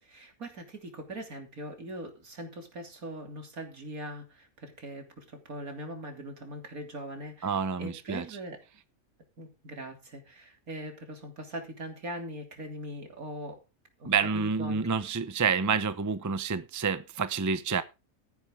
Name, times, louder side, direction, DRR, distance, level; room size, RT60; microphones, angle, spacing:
voice 1, 0.0-8.6 9.4-13.6 14.0-14.8, right 1 dB, 90° right, 3.5 m, -41 dB
voice 2, 7.4-8.2 14.0-17.8, right 6 dB, 20° right, 0.6 m, -28 dB
14.0 x 10.0 x 3.7 m
omnidirectional pair, 1.5 m